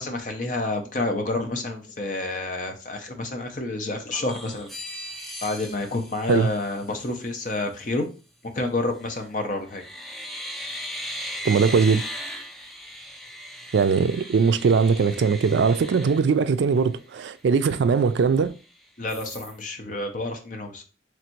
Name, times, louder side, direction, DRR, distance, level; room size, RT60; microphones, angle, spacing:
voice 1, 0.0-4.8 5.4-8.1 8.4-9.8 19.0-20.8, left 2 dB, 40° left, 0.7 m, -29 dB
sound 1, 4.1-7.1 9.0-9.3 9.7-17.0 17.4-17.5 17.8-18.7 19.1-19.6, equal, ahead, 0.4 m, -38 dB
voice 2, 11.4-12.0 13.7-18.5, right 5 dB, 70° right, 0.3 m, -20 dB
3.2 x 2.6 x 4.4 m
head